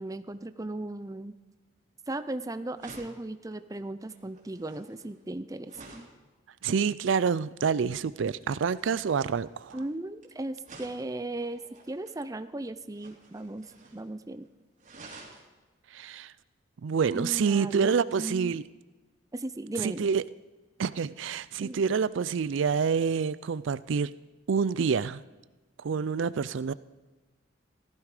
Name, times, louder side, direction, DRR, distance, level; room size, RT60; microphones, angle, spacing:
voice 1, 0.0-1.3 2.1-6.1 9.7-11.6 11.9-13.7 13.9-14.5 17.1-18.5 19.3-20.1 21.6-21.8, right 2 dB, 15° right, 11 dB, 0.5 m, -37 dB
sound 1, 2.3-2.4 2.8-6.2 8.2-10.3 10.6-12.2 12.9-14.1 14.3-14.4 14.8-15.5 17.3-17.4, right 3 dB, 35° right, 3.1 m, -51 dB
voice 2, 6.6-9.8 15.9-16.3 16.8-18.6 19.8-20.2 20.8-24.1 24.5-25.2 25.8-26.7, right 6 dB, 70° right, 17 dB, 0.4 m, -27 dB
15.5 x 14.0 x 5.0 m, 1.2 s
head